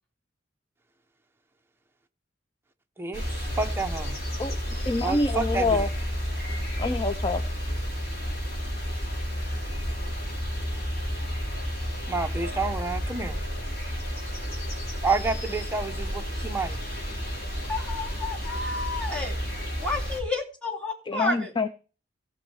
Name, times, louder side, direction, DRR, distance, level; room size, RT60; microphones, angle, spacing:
voice 1, 3.0-4.2 5.0-5.8 12.1-13.4 15.0-16.8, right 3 dB, 15° right, 0.9 m, -29 dB
sound 1, 3.1-20.2, equal, 55° left, 4.4 m, -31 dB
voice 2, 4.4-5.9 6.8-7.4 21.1-21.7, left 3 dB, 25° left, 0.6 m, -26 dB
voice 3, 17.7-19.4 19.8-21.5, left 3 dB, 5° left, 3.4 m, -31 dB
17.0 x 6.4 x 4.8 m
head